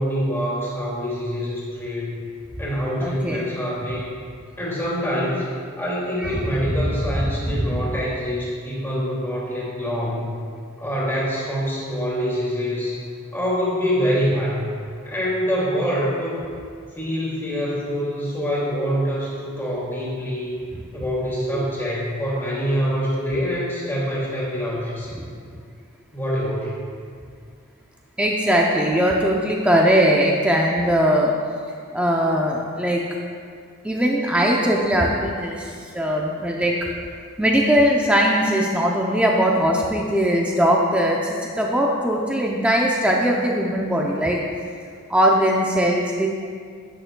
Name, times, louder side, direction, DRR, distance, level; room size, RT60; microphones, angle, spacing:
voice 1, 0.0-2.2 2.6-4.1 4.6-5.5 5.8-10.3 10.8-13.0 13.3-14.6 15.0-16.4 16.9-20.5 20.9-25.2 26.1-26.8, equal, 10° left, -6 dB, 2.3 m, -25 dB
voice 2, 3.0-3.5 6.2-6.9 7.2-7.8 21.6-21.7 25.2-25.3 28.2-31.3 31.9-33.0 33.8-36.7 37.4-44.4 45.1-46.3, equal, 5° right, -2 dB, 0.5 m, -20 dB
11.0 x 8.9 x 2.2 m, 2.1 s
head